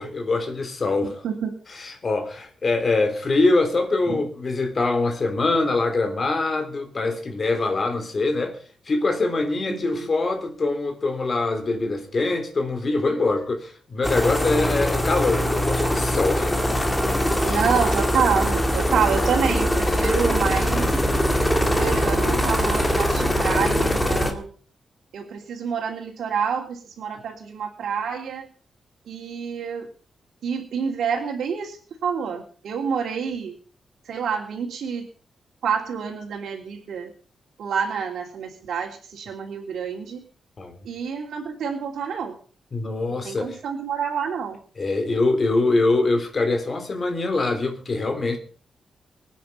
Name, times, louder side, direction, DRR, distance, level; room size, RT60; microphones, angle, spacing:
voice 1, 0.0-1.2 1.7-8.6 8.9-17.1 17.4-17.6 40.6-40.8 42.7-43.6 44.8-48.4, left 3 dB, 35° left, 3.6 m, -24 dB
voice 2, 1.2-1.6 4.1-4.2 9.7-10.1 17.4-21.0 21.6-24.5 25.1-28.5 29.1-29.9 30.4-33.5 34.0-35.0 35.6-37.1 37.6-40.2 40.8-42.3 43.2-44.6, right 6 dB, 80° right, 3.2 m, -27 dB
sound 1, 14.0-24.3, equal, 10° left, 2.3 m, -22 dB
24.0 x 9.4 x 5.6 m
wide cardioid pair, 155°, 0 cm